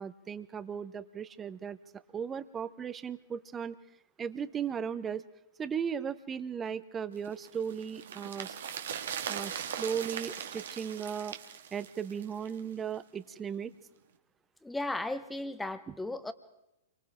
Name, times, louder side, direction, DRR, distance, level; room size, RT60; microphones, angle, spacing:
voice 1, 0.0-1.8 2.1-3.8 4.2-5.2 5.6-8.6 9.3-11.4 11.7-13.7, right 7 dB, 20° right, 14 dB, 0.9 m, -36 dB
sound 1, 7.2-12.7 12.9-13.0, right 8 dB, 65° right, 1.8 m, -40 dB
voice 2, 14.6-16.3, left 2 dB, 5° left, 11 dB, 1.3 m, -35 dB
28.5 x 24.0 x 3.7 m, 0.86 s
hypercardioid pair, 110°, 0 cm